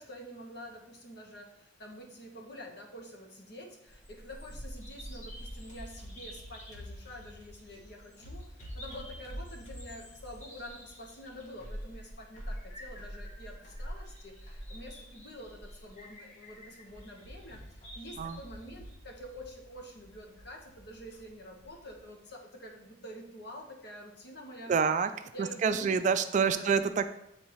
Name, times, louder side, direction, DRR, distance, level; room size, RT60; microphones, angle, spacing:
voice 1, 0.0-24.8 25.3-26.0 26.5-26.8, equal, 60° left, 1 dB, 1.2 m, -47 dB
Bird vocalization bird call bird song, 3.9-22.0, equal, 40° left, 1.1 m, -46 dB
voice 2, 24.7-25.1 25.4-27.1, right 6 dB, 40° right, 10 dB, 0.3 m, -27 dB
8.5 x 3.6 x 3.1 m, 0.78 s
head